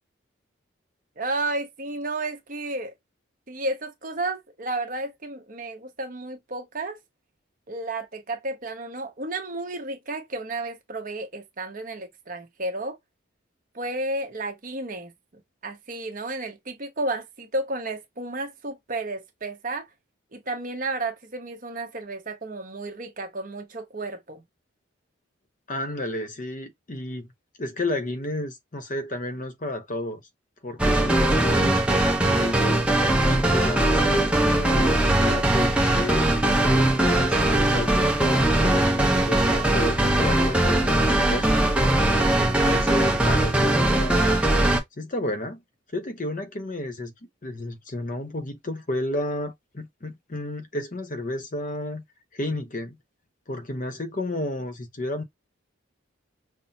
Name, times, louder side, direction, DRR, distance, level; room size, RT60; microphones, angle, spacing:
voice 1, 1.2-2.9 3.5-7.0 7.7-13.0 13.7-15.1 15.6-19.9 20.3-24.4, right 2 dB, 40° right, 0.9 m, -32 dB
voice 2, 25.7-27.3 27.6-30.2 30.6-41.6 42.4-44.4 45.0-45.6 45.9-47.1 47.4-52.0 52.3-53.0 53.5-55.2, left 1 dB, 40° left, 0.8 m, -31 dB
sound 1, 30.8-44.8, right 1 dB, 5° right, 0.7 m, -21 dB
5.6 x 2.1 x 2.7 m
head